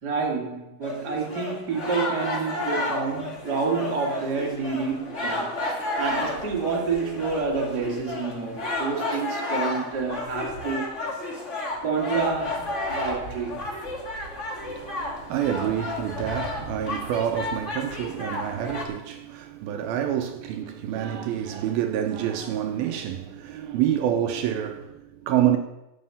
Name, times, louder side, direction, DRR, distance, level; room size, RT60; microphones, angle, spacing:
voice 1, 0.0-5.6 6.0-10.9 11.8-13.6 20.4-20.5, right 5 dB, 40° right, 1.4 m, -28 dB
sound 1, 0.8-18.8, left 2 dB, 35° left, 1.2 m, -32 dB
voice 2, 14.6-25.6, right 10 dB, 80° right, 2.3 m, -27 dB
11.5 x 8.7 x 7.0 m
omnidirectional pair, 4.9 m